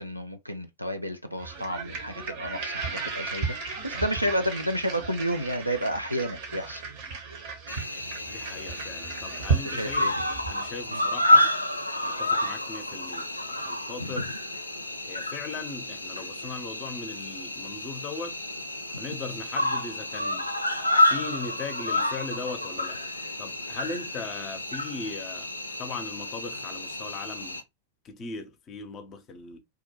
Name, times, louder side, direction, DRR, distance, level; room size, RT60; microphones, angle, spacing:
voice 1, 0.0-3.6 3.8-6.8 9.6-10.1 10.9-11.0 14.0-14.3, equal, 90° right, 0.3 m, -31 dB
sound 1, 1.4-10.7, right 4 dB, 50° right, 0.7 m, -34 dB
Cricket, 7.7-27.6, left 1 dB, 85° left, 0.3 m, -29 dB
voice 2, 8.3-10.1 10.5-11.5 12.0-14.3 15.0-18.4 18.9-20.4 21.0-23.0 23.4-25.5 25.8-27.6 28.0-29.6, left 4 dB, 30° left, 0.5 m, -38 dB
2.3 x 2.1 x 2.8 m
figure-of-eight pair, 90°, 0 cm